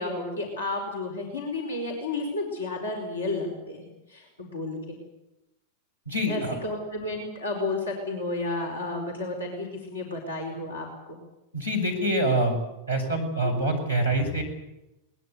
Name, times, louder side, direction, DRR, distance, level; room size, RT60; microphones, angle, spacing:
voice 1, 0.0-5.0 6.3-11.2 13.4-13.5, left 2 dB, 75° left, 1 dB, 5.0 m, -32 dB
voice 2, 6.1-6.6 11.5-12.6 12.9-14.4, right 1 dB, 90° left, 1 dB, 5.7 m, -25 dB
21.5 x 20.5 x 8.2 m, 0.93 s
figure-of-eight pair, 90°, 0 cm